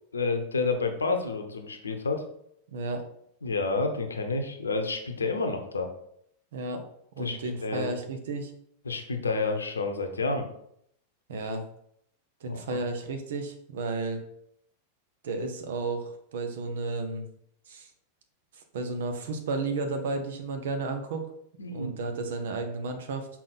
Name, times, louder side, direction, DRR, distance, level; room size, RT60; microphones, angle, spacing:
voice 1, 0.1-2.2 3.4-5.9 7.2-7.9 8.8-10.5 12.5-12.8 21.6-21.9, left 3 dB, 75° left, 6 dB, 0.9 m, -29 dB
voice 2, 2.7-3.0 6.5-6.8 7.2-8.5 11.3-11.6 12.4-14.2 15.2-17.3 17.7-17.9 18.5-21.3 21.7-23.3, right 3 dB, 60° right, 6 dB, 0.9 m, -33 dB
6.1 x 4.1 x 4.1 m, 0.71 s
figure-of-eight pair, 90°, 0 cm